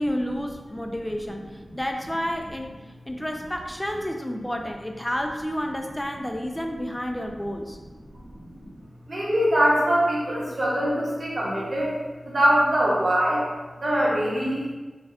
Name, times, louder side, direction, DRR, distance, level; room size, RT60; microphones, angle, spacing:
voice 1, 0.0-2.8 3.1-7.8, equal, 15° left, 3 dB, 0.4 m, -30 dB
voice 2, 8.1-8.7 9.1-11.9 12.2-13.5 13.8-14.7, equal, 60° right, -5 dB, 0.9 m, -23 dB
2.6 x 2.4 x 3.2 m, 1.2 s
wide cardioid pair, 65°, 0 cm